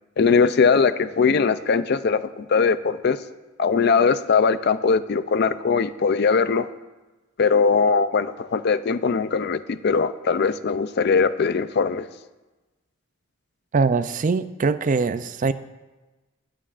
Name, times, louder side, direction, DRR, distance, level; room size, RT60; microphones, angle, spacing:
voice 1, 0.2-3.2 3.6-6.7 7.4-12.1, left 5 dB, 50° left, 13 dB, 0.4 m, -20 dB
voice 2, 13.7-15.5, right 4 dB, 40° right, 13 dB, 0.4 m, -22 dB
19.0 x 9.2 x 2.5 m, 1.2 s
head